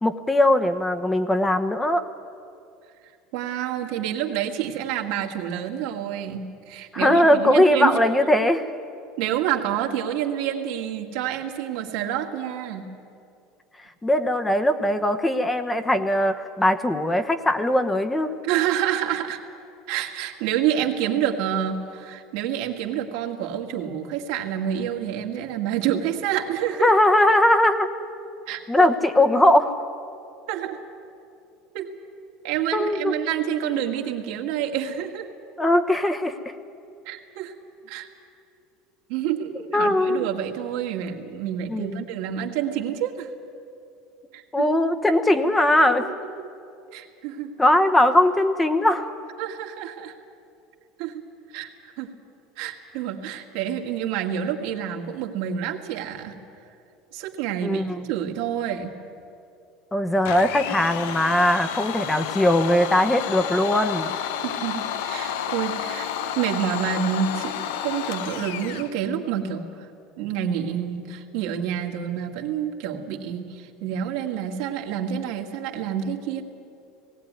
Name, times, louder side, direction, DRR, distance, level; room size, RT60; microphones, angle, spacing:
voice 1, 0.0-2.0 6.9-8.7 14.0-18.3 26.8-27.9 28.7-29.7 32.7-33.1 35.6-36.5 39.7-40.3 41.7-42.0 44.5-46.1 47.6-49.1 57.6-58.1 59.9-64.2, left 1 dB, 10° left, 8 dB, 0.9 m, -20 dB
voice 2, 3.3-8.0 9.2-12.9 18.4-19.4 19.9-26.9 28.5-28.9 30.5-30.8 31.7-31.9 32.4-35.3 37.1-37.5 37.9-38.1 39.1-43.3 44.3-44.7 46.0-46.5 46.9-47.5 49.4-50.1 51.0-51.2 51.5-52.1 52.6-56.4 57.1-58.9 64.4-69.9 70.2-76.4, right 9 dB, 75° right, 2 dB, 2.0 m, -28 dB
Domestic sounds home sounds, 60.2-68.9, left 9 dB, 80° left, 0.9 m, -31 dB
18.5 x 16.5 x 9.3 m, 2.5 s
supercardioid pair, 120°, 0 cm